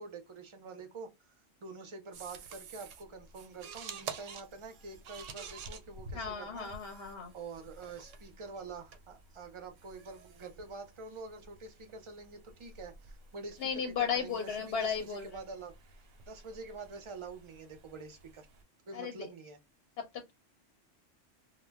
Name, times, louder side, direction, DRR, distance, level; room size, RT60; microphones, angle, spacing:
voice 1, 0.0-1.3 1.6-6.7 7.3-18.5 18.9-19.6, right 3 dB, 40° right, 0.4 m, -46 dB
sound 1, 2.1-18.6, right 5 dB, 90° right, 1.0 m, -50 dB
voice 2, 6.1-7.3 13.6-15.2 18.9-19.2 20.0-20.3, left 6 dB, 60° left, 0.8 m, -35 dB
2.2 x 2.0 x 3.4 m
omnidirectional pair, 1.2 m